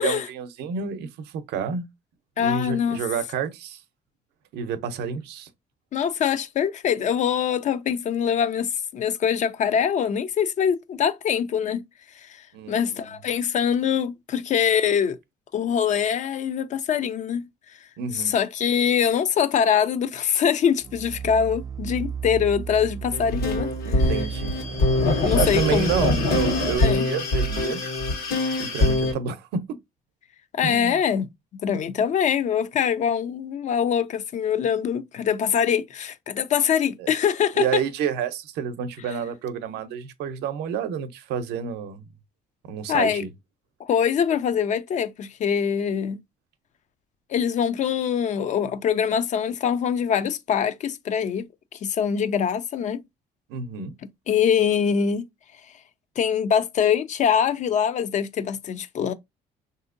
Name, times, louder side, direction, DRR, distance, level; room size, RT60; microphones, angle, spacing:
voice 1, 0.0-1.9 2.4-3.8 4.5-5.5 12.5-13.2 18.0-18.3 23.8-24.6 25.3-27.8 28.6-29.8 30.6-31.0 37.0-37.1 37.5-42.1 42.7-43.3 53.5-54.0, right 7 dB, 80° right, 0.6 m, -29 dB
voice 2, 2.4-3.0 5.9-11.8 12.2-12.4 12.7-15.2 15.5-17.5 18.1-24.1 25.2-25.9 26.8-27.0 30.5-31.3 31.6-37.8 42.9-43.3 43.8-46.2 47.3-51.5 51.7-53.0 54.3-55.2 56.2-59.1, left 8 dB, 45° left, 0.4 m, -23 dB
sound 1, 20.8-26.8, right 7 dB, 20° right, 0.4 m, -33 dB
sound 2, 23.1-29.1, left 2 dB, 70° left, 1.3 m, -23 dB
3.4 x 2.7 x 2.5 m
cardioid pair, 110°, 17 cm